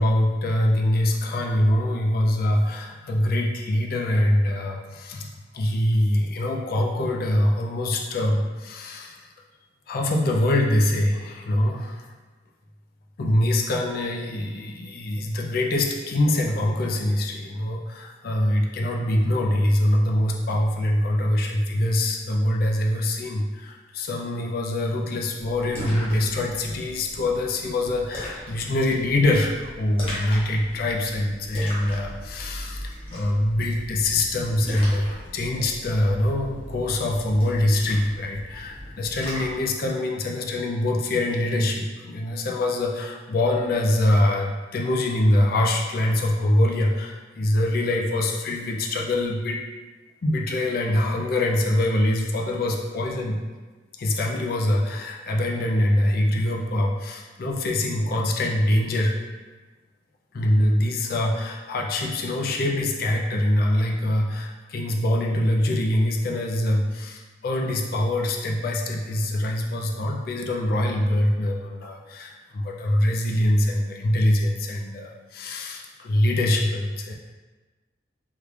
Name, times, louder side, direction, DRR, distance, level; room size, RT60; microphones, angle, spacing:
voice 1, 0.0-5.3 5.5-9.3 9.9-12.1 13.2-49.6 50.2-53.4 54.0-59.1 60.3-77.1, left 1 dB, 50° left, 0 dB, 0.4 m, -24 dB
Splash splatter, 25.4-39.7, equal, 30° left, 0.7 m, -38 dB
3.5 x 2.3 x 3.1 m, 1.3 s
head